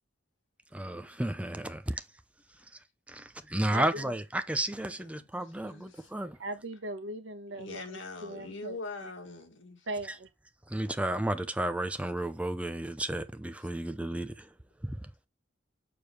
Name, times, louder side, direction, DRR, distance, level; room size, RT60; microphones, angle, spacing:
voice 1, 0.7-2.0 3.1-6.4 10.7-14.5 14.8-15.0, right 1 dB, 5° right, 0.5 m, -32 dB
voice 2, 3.7-4.1 6.4-7.8 8.2-9.1 9.9-10.3, right 2 dB, 85° right, 1.2 m, -39 dB
voice 3, 4.6-6.1 7.5-9.9, left 3 dB, 85° left, 1.7 m, -43 dB
6.9 x 4.7 x 3.2 m
head